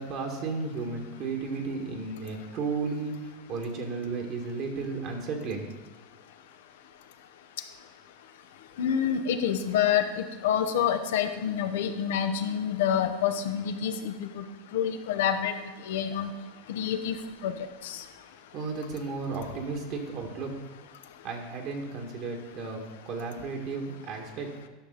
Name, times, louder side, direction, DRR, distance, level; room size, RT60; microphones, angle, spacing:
voice 1, 0.0-5.7 18.5-20.6 21.2-22.8 23.1-24.5, right 4 dB, 55° right, 1 dB, 1.8 m, -34 dB
voice 2, 8.8-14.4 14.7-15.6 15.9-16.3 16.7-17.2 17.4-17.5 17.8-18.0, left 9 dB, 75° left, 8 dB, 0.8 m, -27 dB
11.5 x 6.3 x 4.0 m, 1.3 s
hypercardioid pair, 95°, 0 cm